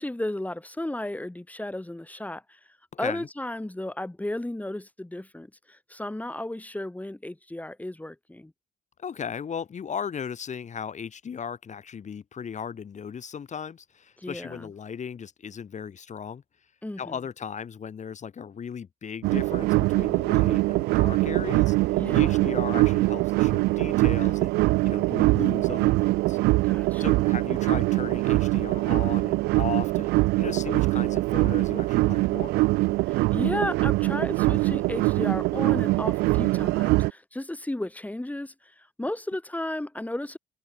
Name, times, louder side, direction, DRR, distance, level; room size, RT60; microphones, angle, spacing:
voice 1, 0.0-2.6 3.0-8.5 14.2-14.7 16.8-17.2 21.9-22.4 26.6-27.3 33.1-40.4, left 1 dB, 10° left, 2.5 m, -34 dB
voice 2, 2.9-3.3 9.0-16.4 17.0-24.5 24.8-26.4 27.0-30.1 30.4-32.5, left 7 dB, 40° left, 3.6 m, -36 dB
sound 1, 19.2-37.1, right 21 dB, 55° right, 0.7 m, -23 dB
figure-of-eight pair, 50°, 19 cm